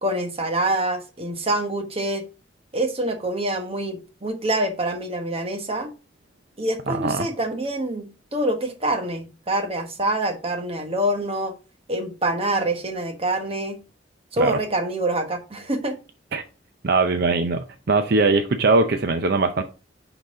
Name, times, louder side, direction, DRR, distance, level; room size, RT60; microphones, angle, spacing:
voice 1, 0.0-2.2 2.7-5.9 6.6-11.5 11.9-13.8 14.3-16.0, right 1 dB, 30° right, 1.2 m, -26 dB
voice 2, 6.9-7.3 14.4-14.6 16.3-16.4 16.8-17.6 17.9-19.6, right 3 dB, 55° right, 0.6 m, -20 dB
10.5 x 4.0 x 3.7 m
head